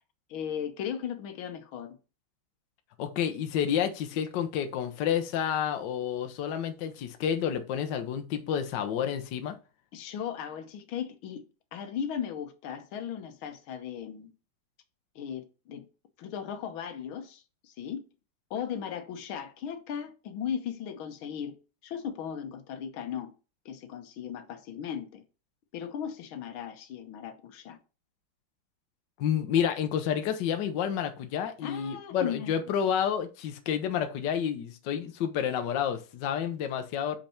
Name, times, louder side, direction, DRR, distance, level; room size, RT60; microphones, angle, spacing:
voice 1, 0.3-2.0 9.9-11.4 11.7-14.3 15.2-15.9 16.2-18.0 18.5-21.6 21.8-23.3 23.7-25.2 25.7-27.8 31.6-32.5, left 8 dB, 85° left, 1.7 m, -37 dB
voice 2, 3.0-9.6 29.2-37.2, left 8 dB, 65° left, 1.4 m, -29 dB
5.8 x 5.4 x 4.3 m
omnidirectional pair, 2.2 m